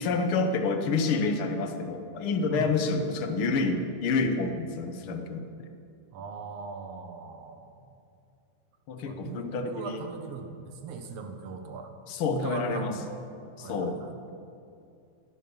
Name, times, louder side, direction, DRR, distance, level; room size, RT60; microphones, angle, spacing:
voice 1, 0.0-5.7 8.9-10.0 12.1-13.0 13.6-14.0, left 4 dB, 60° left, 6 dB, 1.5 m, -28 dB
voice 2, 6.1-7.9 9.1-11.9 12.3-13.2 13.6-14.1, right 5 dB, 60° right, 6 dB, 2.0 m, -39 dB
19.5 x 12.5 x 5.3 m, 2.5 s
omnidirectional pair, 3.6 m